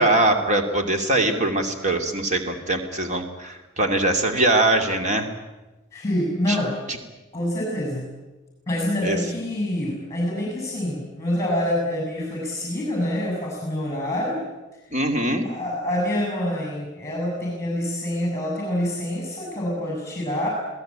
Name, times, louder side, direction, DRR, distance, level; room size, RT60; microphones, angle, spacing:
voice 1, 0.0-5.3 9.0-9.2 14.9-15.5, right 2 dB, 35° right, 4 dB, 2.6 m, -22 dB
voice 2, 5.9-6.8 7.3-8.1 8.7-14.4 14.9-20.5, left 1 dB, 15° left, 0 dB, 7.0 m, -26 dB
27.0 x 18.5 x 8.7 m, 1.1 s
head